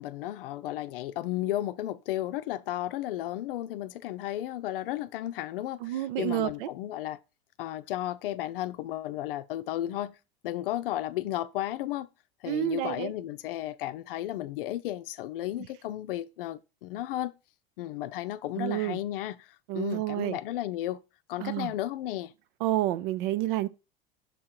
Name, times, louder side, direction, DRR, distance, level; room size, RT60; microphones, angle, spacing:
voice 1, 0.0-7.2 7.6-10.2 10.4-12.1 12.4-17.3 17.8-21.0 21.3-22.3, left 14 dB, 70° left, 0.5 m, -34 dB
voice 2, 5.8-6.7 12.5-13.1 18.6-19.0 19.7-20.4 21.4-21.7 22.6-23.7, right 14 dB, 60° right, 0.6 m, -29 dB
6.8 x 3.7 x 4.4 m
hypercardioid pair, 85°, 29 cm